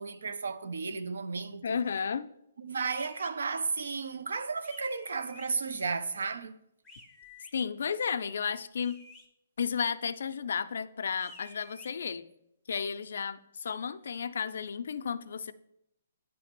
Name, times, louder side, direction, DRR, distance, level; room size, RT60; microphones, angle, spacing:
voice 1, 0.0-1.8 2.6-6.6, right 4 dB, 85° right, 0.6 m, -34 dB
voice 2, 1.6-2.3 7.5-9.0 9.6-12.2 12.7-15.5, left 6 dB, 65° left, 0.4 m, -33 dB
sound 1, 2.9-3.3 4.6-5.5 6.8-7.5 8.8-9.3 11.1-11.9, left 3 dB, 5° left, 0.6 m, -52 dB
9.1 x 3.2 x 5.9 m
hypercardioid pair, 170°, 0 cm